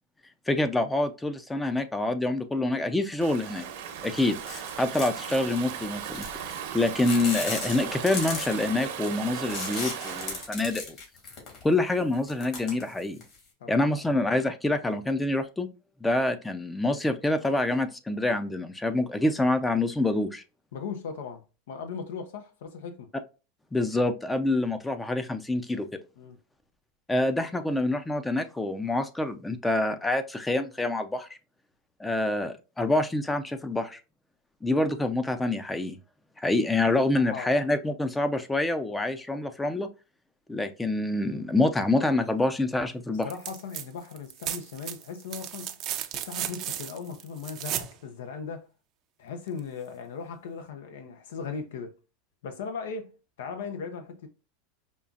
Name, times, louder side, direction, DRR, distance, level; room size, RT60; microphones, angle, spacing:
voice 1, 0.5-3.7 4.0-6.3 6.7-11.0 11.6-13.2 13.7-15.7 16.0-20.4 23.7-26.0 27.1-31.4 32.0-34.0 34.6-36.0 36.4-39.9 40.5-43.3, left 2 dB, 10° left, 0.5 m, -26 dB
Stream / Ocean, 3.2-10.5, right 8 dB, 70° right, 0.9 m, -37 dB
sound 1, 4.5-5.7 6.1-6.7 7.0-11.7 12.1-13.4, left 3 dB, 50° left, 2.2 m, -36 dB
voice 2, 13.6-14.0 20.7-23.1 26.2-26.4 37.1-37.5 43.1-45.8 46.1-48.7 49.2-51.9 52.4-53.1 53.4-54.3, left 5 dB, 80° left, 0.6 m, -38 dB
sound 2, 43.2-43.9 44.1-47.9 49.6-49.7, right 11 dB, 45° right, 0.5 m, -35 dB
5.3 x 2.4 x 2.4 m
supercardioid pair, 120°, 0 cm